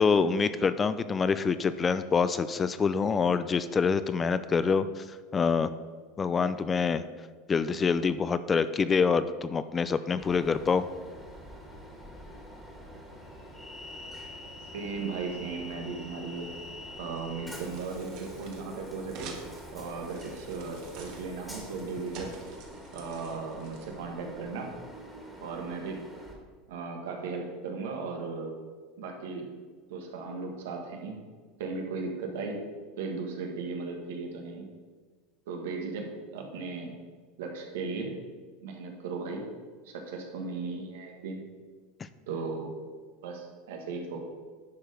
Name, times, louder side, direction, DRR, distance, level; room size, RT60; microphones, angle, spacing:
voice 1, 0.0-5.0 5.3-5.7 6.2-7.0 7.5-10.9, left 5 dB, 20° left, 13 dB, 0.4 m, -26 dB
Train, 10.2-26.3, equal, ahead, 1.8 m, -45 dB
voice 2, 14.7-16.5 17.0-19.3 19.7-22.3 22.9-24.7 25.4-26.0 26.7-28.5 29.0-29.4 29.9-31.2 31.6-32.6 32.9-34.7 35.5-36.1 36.3-36.9 37.4-38.1 38.6-39.4 39.8-41.4 42.3-42.7 43.2-44.2, right 4 dB, 85° right, 2 dB, 1.6 m, -36 dB
sound 1, 16.4-24.4, right 4 dB, 60° right, 1.6 m, -49 dB
10.5 x 4.7 x 5.1 m, 1.5 s
supercardioid pair, 130°, 0 cm